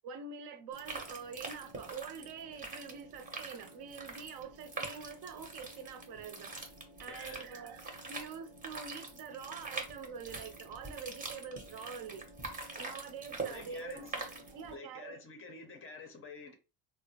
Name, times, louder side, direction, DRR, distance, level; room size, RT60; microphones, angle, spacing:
voice 1, 0.0-6.5 7.0-12.3 12.7-15.2, right 6 dB, 55° right, 0.6 m, -45 dB
sound 1, 0.7-14.7, right 3 dB, 20° right, 0.6 m, -45 dB
voice 2, 7.0-7.5 13.5-14.1 14.7-16.5, left 4 dB, 30° left, 0.5 m, -49 dB
3.6 x 2.0 x 2.7 m
cardioid pair, 130°, 45 cm